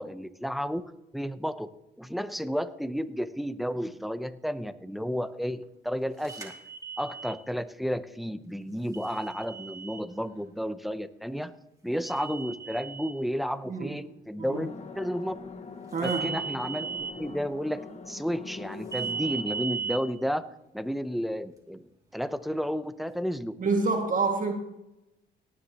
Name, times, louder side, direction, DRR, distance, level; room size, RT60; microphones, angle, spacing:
voice 1, 0.0-1.7 2.0-6.5 7.0-11.5 11.8-14.7 15.0-15.4 16.0-17.8 18.1-20.5 20.7-21.8 22.1-23.6, equal, ahead, 0.7 m, -32 dB
sound 1, 6.2-7.4 8.9-10.0 12.1-13.1 16.0-17.1 18.9-20.0, right 6 dB, 15° right, 2.6 m, -36 dB
sound 2, 14.5-19.7, left 4 dB, 35° left, 1.3 m, -43 dB
voice 2, 15.9-16.3 23.6-24.5, right 4 dB, 40° right, 2.1 m, -27 dB
18.0 x 9.9 x 3.0 m
cardioid pair, 90°, 20 cm